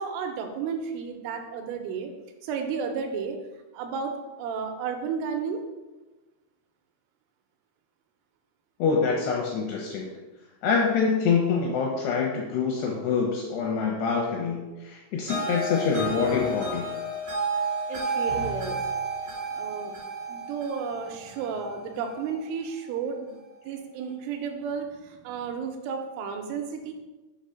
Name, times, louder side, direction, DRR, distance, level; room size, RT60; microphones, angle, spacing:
voice 1, 0.0-2.1 2.4-3.4 3.7-5.6 17.9-18.8 19.5-20.0 20.3-26.9, right 6 dB, 85° right, 4 dB, 3.2 m, -33 dB
voice 2, 8.8-10.1 10.6-16.9, left 5 dB, 85° left, -1 dB, 2.4 m, -25 dB
sound 1, 15.3-22.4, right 2 dB, 55° right, 0.8 m, -31 dB
7.4 x 3.3 x 5.6 m, 1.2 s
omnidirectional pair, 5.6 m